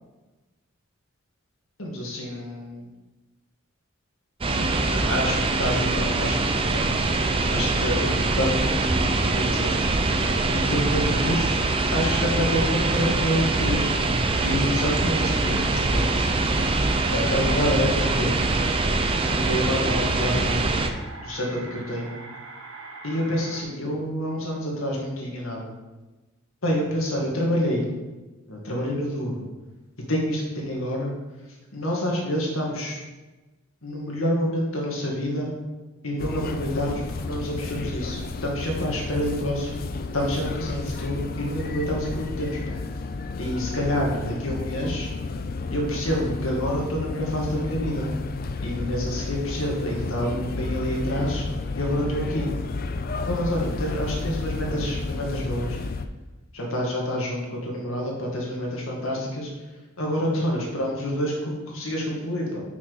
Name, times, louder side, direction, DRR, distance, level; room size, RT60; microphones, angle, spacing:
voice 1, 1.8-2.8 4.6-6.4 6.7-6.9 7.5-9.7 10.5-13.9 14.4-16.3 17.1-18.4 19.3-20.9 21.2-22.2 23.0-25.7 26.6-27.8 28.5-29.4 30.1-31.1 31.7-33.0 33.8-35.5 36.0-39.8 40.1-42.7 43.4-45.1 45.7-48.1 48.6-51.5 51.8-52.5 53.3-55.8 56.5-59.5 60.0-62.6, equal, 80° left, -1 dB, 1.9 m, -28 dB
sound 1, 4.4-20.9, right 2 dB, 25° right, 0.5 m, -23 dB
sound 2, 5.5-23.6, right 3 dB, 70° right, 1.3 m, -45 dB
sound 3, 36.2-56.1, left 3 dB, 45° left, 0.4 m, -32 dB
6.0 x 5.9 x 4.7 m, 1.2 s
head